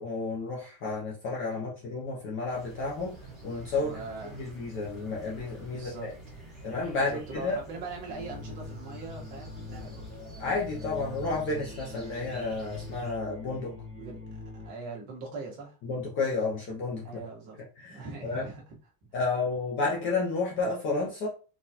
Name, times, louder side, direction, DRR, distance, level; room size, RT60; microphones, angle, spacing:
voice 1, 0.0-3.1 3.4-4.0 4.3-6.1 6.6-7.5 10.4-13.7 15.8-17.0 17.8-18.4 19.1-21.3, left 3 dB, 30° left, -3 dB, 0.4 m, -31 dB
sound 1, 2.4-13.2, right 2 dB, ahead, 1.0 m, -48 dB
voice 2, 3.8-4.5 5.7-10.1 14.0-14.2 14.6-15.8 17.0-17.6 17.9-18.6, right 3 dB, 45° right, -2 dB, 1.2 m, -42 dB
sound 2, 8.1-14.7, left 3 dB, 15° right, 0.7 m, -43 dB
3.9 x 2.3 x 2.7 m, 0.36 s
cardioid pair, 180°, 47 cm